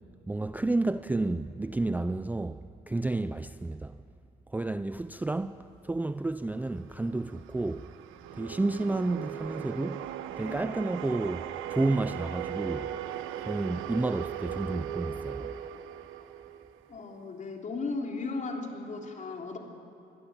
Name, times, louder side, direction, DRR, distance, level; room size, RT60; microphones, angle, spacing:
voice 1, 0.3-4.0 4.5-7.9 8.3-10.1 10.4-12.9 13.4-15.5, right 2 dB, 10° right, 0.4 m, -31 dB
sound 1, 6.8-17.2, right 10 dB, 80° right, 1.1 m, -38 dB
voice 2, 16.9-19.6, left 3 dB, 40° left, 3.6 m, -35 dB
24.0 x 17.0 x 8.9 m
cardioid pair, 95°, 20 cm